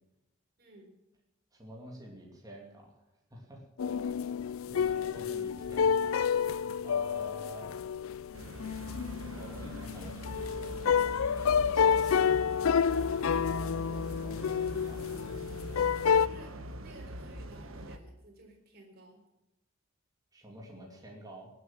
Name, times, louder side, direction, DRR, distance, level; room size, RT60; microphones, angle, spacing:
voice 1, 0.6-0.9 4.6-5.0 13.8-14.0 16.2-19.2, right 1 dB, 50° right, 0 dB, 3.9 m, -54 dB
voice 2, 1.5-3.0 3.3-3.6 4.7-6.2 6.8-7.8 9.3-15.1 20.3-21.5, equal, 20° right, -1 dB, 2.6 m, -49 dB
sound 1, 3.8-16.3, left 7 dB, 80° left, 0.4 m, -29 dB
sound 2, 8.3-18.0, equal, 80° right, 1.3 m, -42 dB
19.0 x 8.0 x 7.4 m, 0.94 s
head